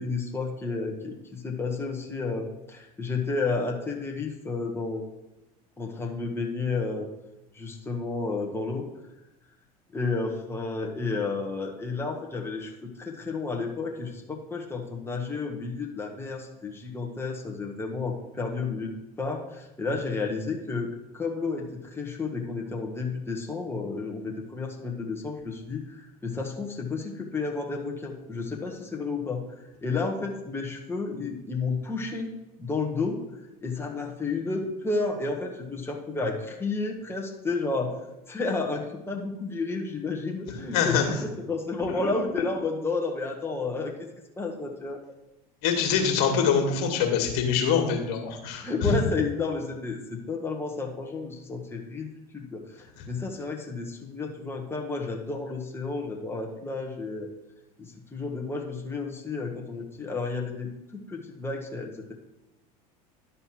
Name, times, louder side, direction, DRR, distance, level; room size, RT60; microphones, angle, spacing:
voice 1, 0.0-5.0 5.8-7.1 7.5-8.9 9.9-32.3 32.6-33.2 33.6-38.0 38.3-44.1 44.4-45.0 48.6-57.3 57.8-60.7 61.1-62.1, left 3 dB, 10° left, 1 dB, 1.5 m, -31 dB
voice 2, 40.7-41.0 41.9-42.1 45.6-49.0 53.0-53.1, left 7 dB, 65° left, 3 dB, 2.0 m, -24 dB
11.0 x 4.2 x 6.0 m, 0.94 s
hypercardioid pair, 90°, 19 cm